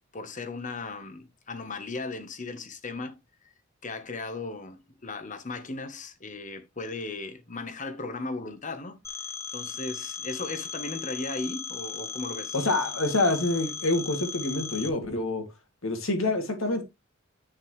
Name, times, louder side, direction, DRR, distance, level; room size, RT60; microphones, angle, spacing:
voice 1, 0.1-3.2 3.8-9.0 9.5-12.5, left 3 dB, 40° left, 1.3 m, -36 dB
Telephone, 9.0-14.9, left 6 dB, 15° left, 1.0 m, -37 dB
voice 2, 12.5-15.5 15.8-16.8, left 2 dB, 75° left, 2.6 m, -26 dB
9.2 x 6.3 x 3.2 m
head